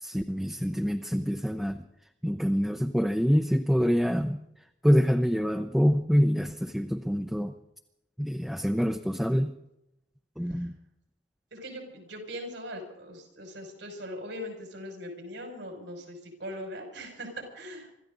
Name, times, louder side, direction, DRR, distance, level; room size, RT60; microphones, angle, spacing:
voice 1, 0.0-1.8 2.2-4.4 4.8-7.5 8.2-9.5 10.4-10.7, equal, ahead, 4 dB, 0.6 m, -26 dB
voice 2, 11.5-17.9, equal, 90° right, 2 dB, 5.9 m, -40 dB
25.5 x 14.0 x 3.9 m, 0.84 s
head